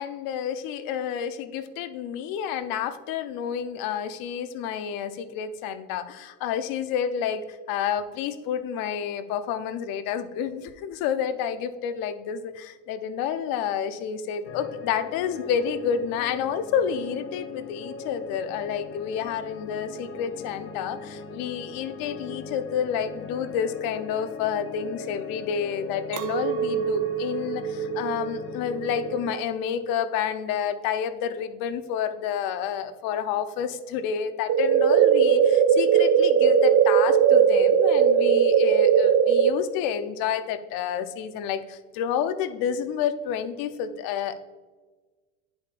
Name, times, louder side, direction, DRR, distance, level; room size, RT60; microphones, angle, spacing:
voice 1, 0.0-44.4, left 8 dB, 65° left, 11 dB, 0.7 m, -29 dB
sound 1, 14.4-29.4, left 4 dB, 35° left, 0.8 m, -40 dB
Chink clink, 26.1-31.5, right 8 dB, 80° right, 0.9 m, -32 dB
sound 2, 34.5-39.5, right 8 dB, 40° right, 0.5 m, -18 dB
11.0 x 5.1 x 2.5 m, 1.3 s
supercardioid pair, 105°, 37 cm